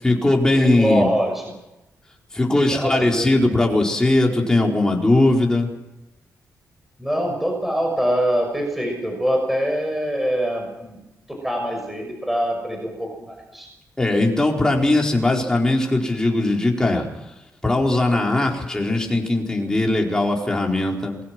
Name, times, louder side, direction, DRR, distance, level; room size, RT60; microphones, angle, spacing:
voice 1, 0.0-1.1 2.3-5.7 14.0-17.1 17.6-21.2, left 2 dB, 10° left, 0 dB, 4.7 m, -19 dB
voice 2, 0.5-1.4 2.7-3.3 7.0-11.0 11.3-13.7, equal, 5° right, 2 dB, 6.2 m, -24 dB
28.0 x 21.0 x 6.2 m, 0.97 s
wide cardioid pair, 125°, 6 cm